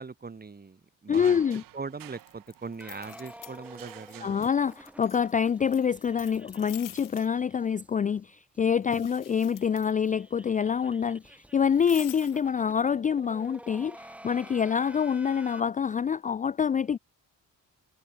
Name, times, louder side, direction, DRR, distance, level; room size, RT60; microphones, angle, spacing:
voice 1, 0.0-1.4 1.7-4.4 8.9-9.0, right 4 dB, 30° right, 3.4 m, -41 dB
voice 2, 1.1-1.6 4.2-17.0, left 7 dB, 25° left, 0.4 m, -26 dB
sound 1, 1.1-3.1 3.6-5.2, right 14 dB, 80° right, 1.8 m, -51 dB
sound 2, 2.1-4.1 4.4-7.3 8.8-10.1 11.7-12.5, left 13 dB, 70° left, 1.3 m, -47 dB
sound 3, 2.8-7.9 8.2-8.3 8.5-8.6 8.9-15.6, right 1 dB, 5° right, 1.8 m, -50 dB
cardioid pair, 95°, 33 cm